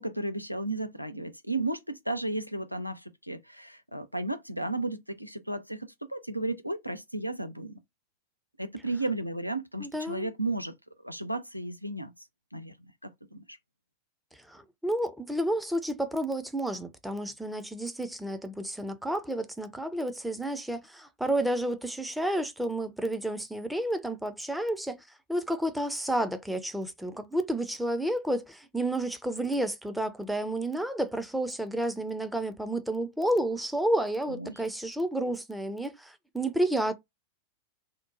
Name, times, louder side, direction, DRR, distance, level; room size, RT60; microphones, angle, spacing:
voice 1, 0.0-7.8 8.6-10.7 11.0-12.1 12.5-12.7 13.0-13.6 34.3-34.6, right 2 dB, 90° right, 0.4 m, -34 dB
voice 2, 9.8-10.3 14.3-36.9, right 1 dB, 5° right, 0.5 m, -31 dB
2.9 x 2.1 x 2.4 m
figure-of-eight pair, 90°, 0 cm